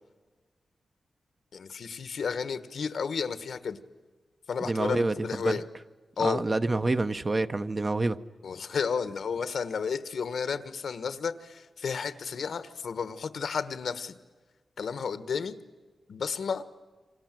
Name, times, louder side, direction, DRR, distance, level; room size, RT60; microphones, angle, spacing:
voice 1, 1.5-3.8 4.5-5.6 6.2-6.4 8.4-14.1 14.8-15.5 16.1-16.6, left 6 dB, 70° left, 12 dB, 1.4 m, -32 dB
voice 2, 4.6-5.6 6.2-8.2, right 2 dB, 25° right, 10 dB, 0.7 m, -27 dB
28.0 x 26.5 x 7.6 m, 1.3 s
wide cardioid pair, 165°, 0 cm